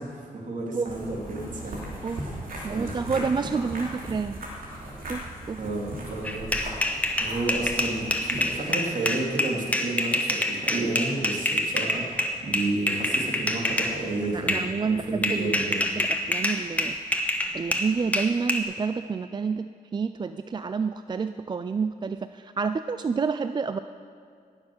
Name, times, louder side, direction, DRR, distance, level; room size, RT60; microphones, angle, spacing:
voice 1, 0.0-1.8 2.1-3.0 5.6-6.5 7.2-15.8, right 2 dB, 60° right, -2 dB, 3.0 m, -31 dB
sound 1, 0.9-8.6, right 1 dB, 75° right, 2.9 m, -38 dB
voice 2, 2.6-4.4 5.1-5.6 14.3-15.6 16.0-17.0 17.2-23.8, right 5 dB, 30° right, 10 dB, 0.4 m, -29 dB
sound 2, 6.2-13.9 14.5-14.7 15.2-18.6, left 1 dB, 10° left, 1.3 m, -26 dB
17.5 x 7.4 x 6.3 m, 2.3 s
cardioid pair, 85°, 15 cm